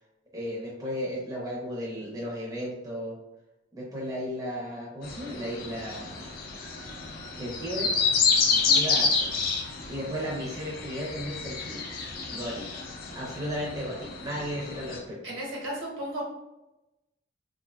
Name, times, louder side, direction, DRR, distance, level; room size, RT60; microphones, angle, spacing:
voice 1, 0.3-3.2 3.7-6.3 7.3-7.9 8.7-9.3 9.9-11.8 12.3-12.7 13.2-15.2, equal, 20° right, -5 dB, 0.6 m, -34 dB
sound 1, 5.0-15.0, left 5 dB, 45° left, 0.5 m, -29 dB
voice 2, 8.5-8.8 15.2-16.2, right 1 dB, 80° right, -4 dB, 1.2 m, -35 dB
3.4 x 2.4 x 2.2 m, 0.97 s
head